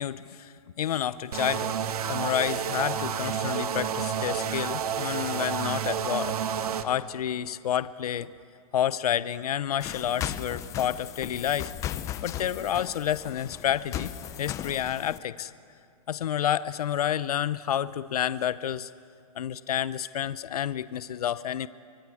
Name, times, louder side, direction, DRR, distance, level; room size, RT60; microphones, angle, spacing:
voice 1, 0.0-1.7 2.1-6.4 6.8-8.3 8.7-11.7 12.2-14.1 14.4-15.5 16.1-18.9 19.4-21.7, left 10 dB, 80° left, 16 dB, 0.8 m, -29 dB
sound 1, 1.3-6.8, right 8 dB, 75° right, 1.6 m, -30 dB
sound 2, 9.8-15.2, left 11 dB, 15° left, 0.6 m, -36 dB
25.0 x 23.0 x 8.5 m, 2.3 s
hypercardioid pair, 155°, 19 cm